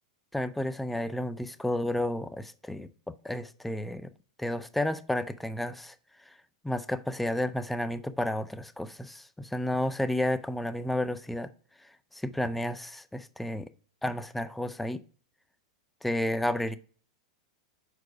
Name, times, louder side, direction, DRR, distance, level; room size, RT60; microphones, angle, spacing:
voice 1, 0.3-2.9 3.2-4.1 4.4-6.0 6.3-6.4 6.6-11.5 12.1-13.7 14.0-15.0 16.0-16.8, left 1 dB, 5° left, 0.4 m, -31 dB
4.9 x 4.5 x 4.7 m
hypercardioid pair, 130°, 4 cm